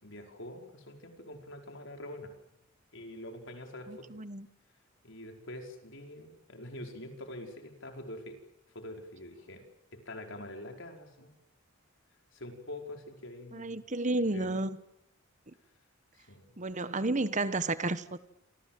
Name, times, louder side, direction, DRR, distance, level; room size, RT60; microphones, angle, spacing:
voice 1, 0.0-2.3 2.9-4.1 5.0-8.4 8.7-9.6 9.9-11.3 12.3-13.8 14.2-14.5 16.2-16.6, left 1 dB, 65° left, 4 dB, 5.3 m, -45 dB
voice 2, 3.9-4.5 13.5-14.8 15.5-15.6 16.6-18.2, right 2 dB, 35° right, 14 dB, 1.3 m, -32 dB
28.5 x 25.5 x 7.7 m, 0.79 s
head